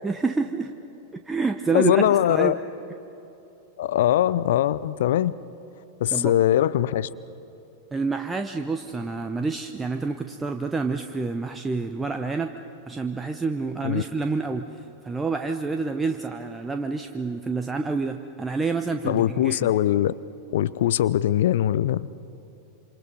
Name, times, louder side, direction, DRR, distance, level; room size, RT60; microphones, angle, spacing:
voice 1, 0.0-0.7 1.3-2.6 6.1-6.3 7.9-12.5 12.9-19.7, right 4 dB, 10° right, 6 dB, 0.9 m, -28 dB
voice 2, 1.7-2.6 3.8-5.3 6.0-7.1 13.8-14.0 19.1-20.1 20.5-22.1, left 12 dB, 55° left, 17 dB, 0.6 m, -21 dB
27.5 x 26.0 x 5.4 m, 3.0 s
figure-of-eight pair, 90°, 0 cm